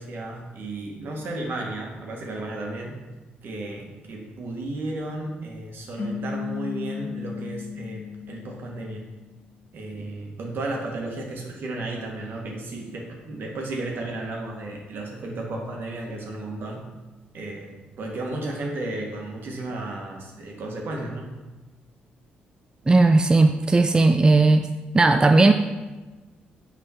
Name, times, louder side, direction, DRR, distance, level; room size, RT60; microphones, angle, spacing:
voice 1, 0.0-3.0 3.4-9.1 9.7-16.9 17.3-21.3, right 2 dB, 65° right, 0 dB, 1.6 m, -33 dB
sound 1, 6.0-9.3, left 6 dB, 60° left, 1.5 m, -34 dB
voice 2, 22.9-24.7 24.9-25.5, right 3 dB, 20° right, 7 dB, 0.4 m, -16 dB
6.3 x 4.9 x 4.4 m, 1.2 s
cardioid pair, 75°, 4 cm